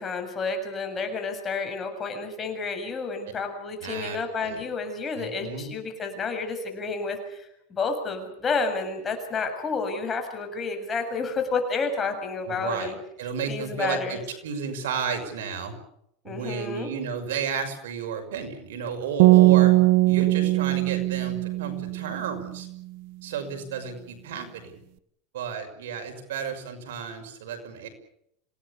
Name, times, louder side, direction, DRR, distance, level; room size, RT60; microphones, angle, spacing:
voice 1, 0.0-13.0 13.5-14.2 16.3-16.9, left 4 dB, 20° left, 5 dB, 7.2 m, -30 dB
voice 2, 3.8-4.6 5.2-5.7 12.5-12.9 13.2-15.7 16.2-19.7 20.1-22.7 23.2-24.8 25.3-27.9, right 6 dB, 85° right, 6 dB, 6.2 m, -33 dB
sound 1, 19.2-22.4, right 18 dB, 65° right, 1.0 m, -19 dB
27.0 x 18.0 x 8.5 m, 0.75 s
supercardioid pair, 135°, 0 cm